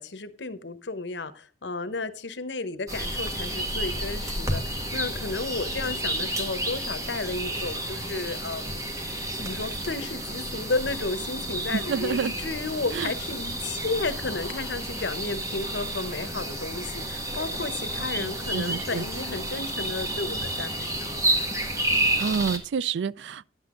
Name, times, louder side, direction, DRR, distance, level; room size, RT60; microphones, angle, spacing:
voice 1, 0.0-21.2, left 3 dB, 80° left, 1.0 m, -33 dB
sound 1, 2.9-22.6, right 1 dB, 20° right, 1.7 m, -31 dB
voice 2, 11.7-12.3 12.9-13.1 18.2-19.0 22.2-23.5, right 6 dB, 85° right, 0.4 m, -29 dB
11.0 x 8.1 x 3.7 m
head